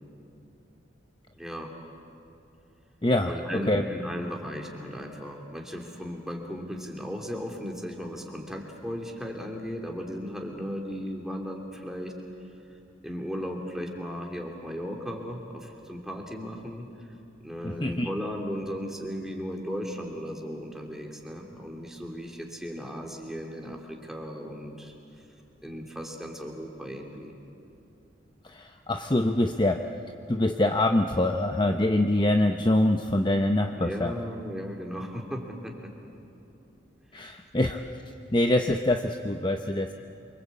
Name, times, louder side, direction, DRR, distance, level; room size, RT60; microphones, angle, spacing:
voice 1, 1.3-1.7 3.2-12.1 13.0-17.1 17.4-24.9 25.6-27.3 33.7-35.9 37.3-37.4, equal, ahead, 0 dB, 2.9 m, -36 dB
voice 2, 3.0-3.8 17.6-18.1 28.4-29.8 30.3-34.1 37.1-37.8 38.3-39.9, left 1 dB, 25° left, 5 dB, 0.8 m, -24 dB
28.0 x 24.5 x 8.5 m, 2.7 s
head